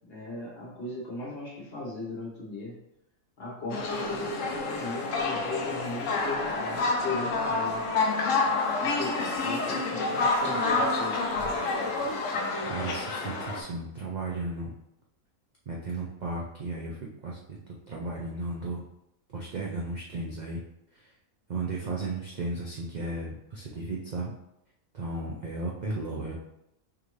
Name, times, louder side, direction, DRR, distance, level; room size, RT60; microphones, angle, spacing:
voice 1, 0.1-2.8 3.4-7.8 8.8-11.3, left 2 dB, 45° left, -4 dB, 1.3 m, -37 dB
sound 1, 3.7-13.6, left 3 dB, 70° left, 1.0 m, -28 dB
voice 2, 12.3-14.7 15.7-17.6 17.9-18.8 19.3-20.6 20.9-21.1 21.5-24.3 24.9-26.3, right 2 dB, 60° right, -3 dB, 0.4 m, -35 dB
4.8 x 2.6 x 3.1 m, 0.82 s
omnidirectional pair, 1.5 m